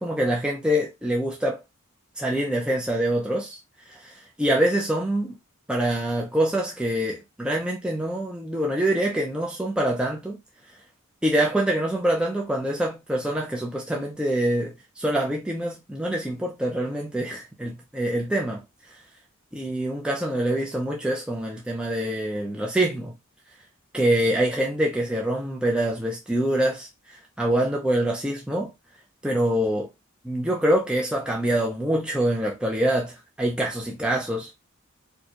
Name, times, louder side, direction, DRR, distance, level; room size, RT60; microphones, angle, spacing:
voice 1, 0.0-1.6 2.2-3.6 3.9-5.4 5.7-10.4 11.2-18.6 19.5-23.1 23.9-28.7 29.2-29.9 30.2-34.5, right 1 dB, 5° right, 0.6 m, -25 dB
4.5 x 2.3 x 2.9 m
head